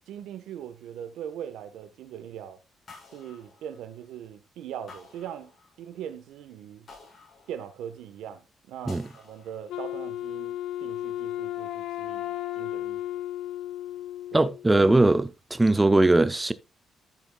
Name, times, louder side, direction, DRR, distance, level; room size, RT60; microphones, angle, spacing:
voice 1, 0.1-2.6 3.1-5.5 5.8-6.9 7.5-13.2 14.3-14.5, right 9 dB, 85° right, 1.2 m, -41 dB
sound 1, 2.9-4.2 4.9-6.1 6.9-8.1 8.9-10.0, left 4 dB, 45° left, 5.8 m, -51 dB
Wind instrument woodwind instrument, 9.7-14.7, left 13 dB, 85° left, 0.6 m, -34 dB
voice 2, 14.3-16.5, right 2 dB, 15° right, 0.7 m, -20 dB
13.5 x 7.1 x 2.3 m
cardioid pair, 90°, 0 cm